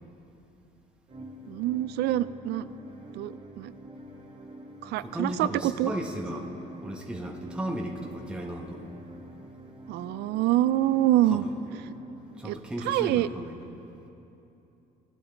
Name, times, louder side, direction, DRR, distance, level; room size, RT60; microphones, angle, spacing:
sound 1, 1.1-13.0, equal, 40° right, 1.9 m, -46 dB
voice 1, 1.5-2.7 3.1-3.7 4.8-5.9 9.9-11.5 12.4-12.6 12.8-13.3, right 14 dB, 80° right, 16 dB, 0.4 m, -26 dB
voice 2, 5.0-6.5 6.8-8.9 11.3-11.5 12.4-13.5, right 1 dB, 5° right, 0 dB, 1.0 m, -35 dB
18.0 x 11.5 x 3.4 m, 2.9 s
cardioid pair, 110°, 17 cm